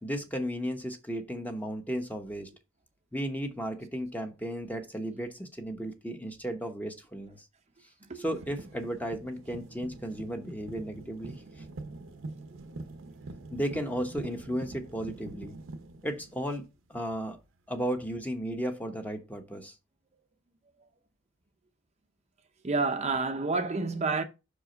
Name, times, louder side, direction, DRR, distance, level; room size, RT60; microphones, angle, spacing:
voice 1, 0.0-2.5 3.1-7.4 8.1-11.4 13.5-15.5 16.0-17.4 17.7-19.7, equal, 10° left, 1.0 m, -34 dB
sound 1, 8.3-17.1 18.0-18.1, right 2 dB, 75° right, 0.8 m, -45 dB
voice 2, 22.6-24.2, right 3 dB, 35° right, 0.6 m, -29 dB
5.9 x 4.8 x 5.1 m
head